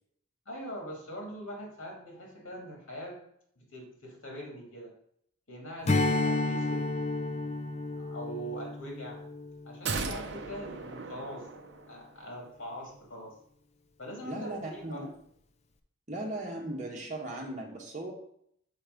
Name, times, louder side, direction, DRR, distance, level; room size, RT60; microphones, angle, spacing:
voice 1, 0.5-3.2 3.6-4.9 5.5-6.9 7.8-9.2 9.6-11.5 11.9-13.4 14.0-15.1, equal, 80° left, 0 dB, 2.3 m, -42 dB
Strum, 5.9-10.6, left 2 dB, 30° left, 0.5 m, -31 dB
sound 1, 9.8-12.2 12.5-12.6, right 4 dB, 55° right, 0.6 m, -37 dB
voice 2, 14.2-15.1 16.1-18.1, right 1 dB, 35° right, -1 dB, 1.4 m, -37 dB
5.6 x 4.4 x 5.2 m, 0.68 s
head